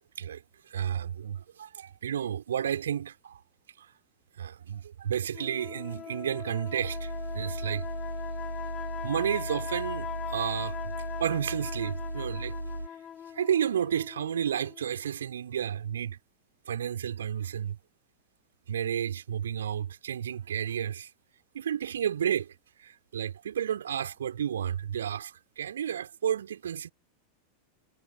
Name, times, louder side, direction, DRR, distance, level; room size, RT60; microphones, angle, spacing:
voice 1, 0.7-3.4 3.8-3.9 4.4-7.9 9.0-10.9 11.2-12.5 13.3-16.2 16.7-17.8 18.7-21.1 21.5-26.9, right 9 dB, 65° right, 4.5 m, -32 dB
sound 1, 5.3-15.0, left 9 dB, 25° left, 1.8 m, -41 dB
sound 2, 6.8-12.9, right 1 dB, 85° right, 4.3 m, -36 dB
figure-of-eight pair, 90°, 0 cm